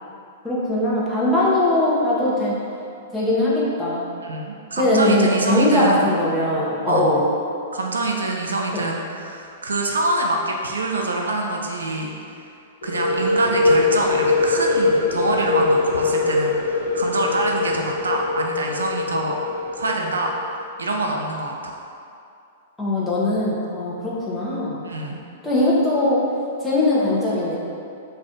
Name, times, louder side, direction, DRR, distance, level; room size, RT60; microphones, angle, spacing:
voice 1, 0.4-2.6 3.1-4.0 4.8-7.2 8.7-8.8 22.8-24.8 25.4-26.2 26.6-27.6, left 1 dB, 10° left, -7 dB, 0.7 m, -20 dB
voice 2, 4.2-6.0 6.9-7.1 7.7-12.4 12.8-19.4 19.8-20.3 20.8-21.8 24.8-25.2, right 2 dB, 80° right, 1 dB, 0.3 m, -25 dB
sound 1, 12.8-20.4, left 3 dB, 70° left, 0.8 m, -22 dB
2.4 x 2.4 x 3.5 m, 2.5 s
figure-of-eight pair, 105°, 0 cm